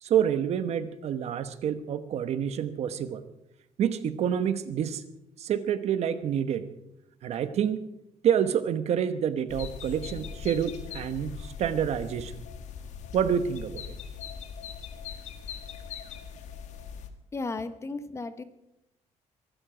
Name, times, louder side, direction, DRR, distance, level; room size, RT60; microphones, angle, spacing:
voice 1, 0.0-3.2 3.8-5.0 5.4-6.7 7.2-7.9 8.2-12.4 13.1-14.0, right 8 dB, 60° right, 11 dB, 1.0 m, -28 dB
sound 1, 9.5-17.1, left 7 dB, 70° left, 1.6 m, -41 dB
voice 2, 17.3-18.4, left 3 dB, 20° left, 12 dB, 0.9 m, -34 dB
23.0 x 12.5 x 5.0 m, 0.87 s
cardioid pair, 160°, 12 cm